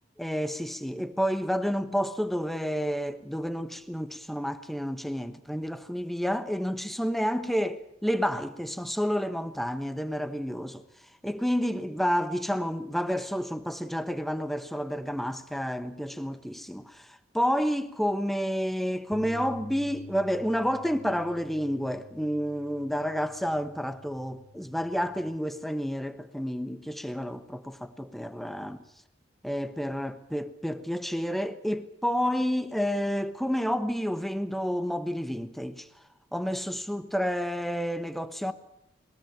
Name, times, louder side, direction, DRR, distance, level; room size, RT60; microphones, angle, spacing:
voice 1, 0.2-10.8 11.2-28.8 29.4-35.9 36.3-38.5, equal, ahead, 1.2 m, -30 dB
sound 1, 19.1-25.4, left 3 dB, 70° left, 2.5 m, -49 dB
21.5 x 19.5 x 8.8 m
head